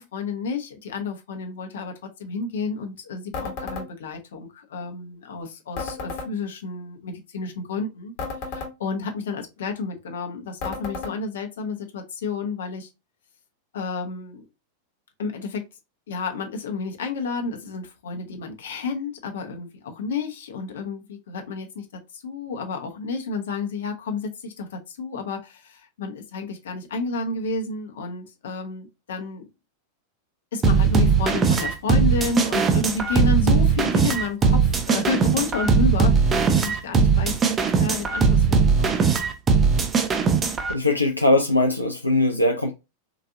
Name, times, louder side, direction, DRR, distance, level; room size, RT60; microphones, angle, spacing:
voice 1, 0.0-8.1 8.5-12.9 13.7-14.4 15.2-15.6 16.1-29.5 30.5-39.0, left 4 dB, 60° left, 0.8 m, -31 dB
sound 1, 3.3-3.9 5.8-6.3 8.2-8.7 10.6-11.1, left 4 dB, 45° left, 1.1 m, -32 dB
sound 2, 30.6-40.7, right 5 dB, 20° right, 0.6 m, -19 dB
voice 2, 40.7-42.7, left 2 dB, 90° left, 0.4 m, -20 dB
3.9 x 2.6 x 2.5 m
figure-of-eight pair, 90°, 0 cm